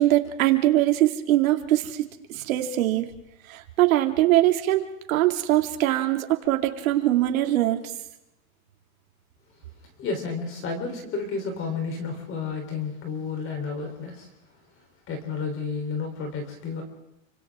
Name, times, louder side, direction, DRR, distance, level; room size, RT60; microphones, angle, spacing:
voice 1, 0.0-2.0 2.3-3.1 3.5-4.8 5.1-7.9, right 14 dB, 75° right, 4 dB, 2.7 m, -22 dB
voice 2, 10.0-14.3 15.1-16.8, left 4 dB, 30° left, 4 dB, 3.9 m, -31 dB
29.5 x 25.5 x 3.7 m, 0.86 s
supercardioid pair, 150°, 42 cm